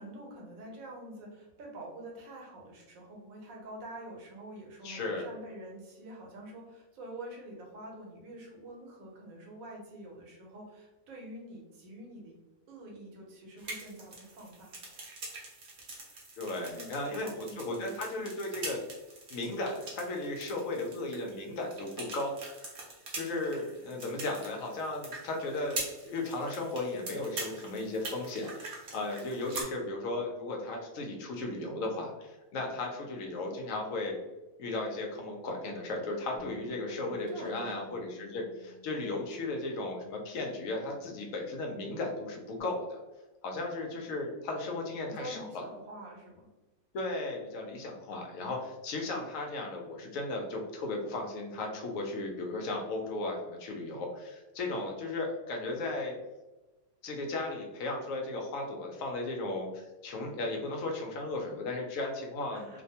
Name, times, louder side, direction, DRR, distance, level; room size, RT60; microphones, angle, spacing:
voice 1, 0.0-12.4 12.7-14.7 16.5-18.3 37.1-37.8 45.0-46.5 62.5-62.8, right 1 dB, 75° right, -1 dB, 1.1 m, -46 dB
voice 2, 4.8-5.3 16.4-18.8 19.3-22.3 23.1-34.2 34.6-43.0 43.4-45.6 46.9-56.1 57.0-62.8, left 2 dB, 70° left, 1 dB, 0.9 m, -35 dB
sound 1, 13.6-29.6, right 2 dB, 50° right, 0.7 m, -44 dB
Bass guitar, 36.4-42.6, right 2 dB, 5° left, 0.8 m, -55 dB
2.6 x 2.1 x 2.7 m, 1.1 s
omnidirectional pair, 1.5 m